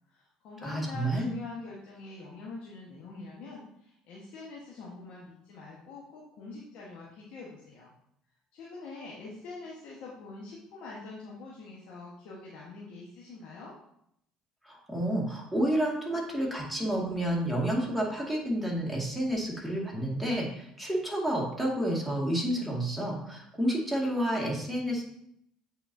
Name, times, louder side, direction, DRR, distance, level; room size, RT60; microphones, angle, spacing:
voice 1, 0.1-7.9 8.5-13.7, left 3 dB, 65° left, -5 dB, 1.3 m, -44 dB
voice 2, 0.6-1.3 14.6-25.0, right 1 dB, ahead, -3 dB, 2.1 m, -30 dB
8.4 x 4.2 x 2.7 m, 0.74 s
supercardioid pair, 80°, 2 cm